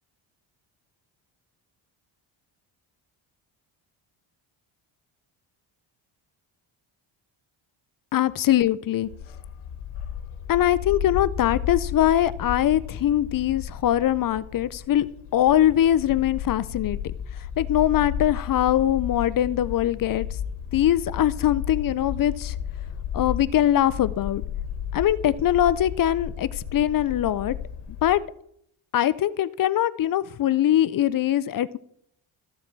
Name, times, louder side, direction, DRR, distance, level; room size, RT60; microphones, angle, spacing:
voice 1, 8.1-9.1 10.5-15.1 15.3-17.0 17.6-20.3 20.7-22.5 23.1-24.4 24.9-27.5 28.0-28.2 28.9-31.8, left 12 dB, 45° left, 17 dB, 0.5 m, -22 dB
Bark, 9.0-28.2, left 9 dB, 85° left, 1.3 m, -33 dB
13.5 x 7.2 x 4.5 m, 0.71 s
cardioid pair, 120°, 49 cm